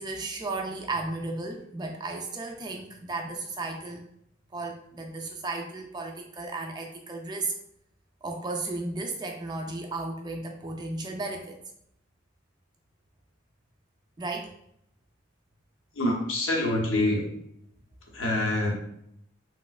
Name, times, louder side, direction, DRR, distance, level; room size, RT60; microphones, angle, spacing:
voice 1, 0.0-4.0 4.5-7.5 8.2-11.6 14.2-14.5, right 2 dB, 20° right, 2 dB, 0.3 m, -34 dB
voice 2, 15.9-17.3 18.1-19.0, left 1 dB, 70° left, -1 dB, 0.7 m, -26 dB
3.1 x 2.9 x 2.3 m, 0.75 s
head